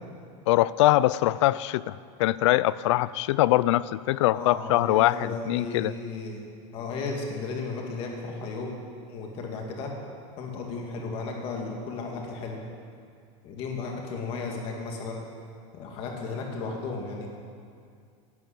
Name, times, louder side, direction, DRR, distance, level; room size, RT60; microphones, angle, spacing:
voice 1, 0.5-5.9, left 16 dB, 65° left, 19 dB, 0.4 m, -23 dB
voice 2, 4.3-8.8 9.1-9.9 10.4-12.6 13.4-15.2 15.7-17.3, left 4 dB, 35° left, 1 dB, 2.0 m, -34 dB
11.5 x 8.9 x 8.5 m, 2.3 s
supercardioid pair, 175°, 16 cm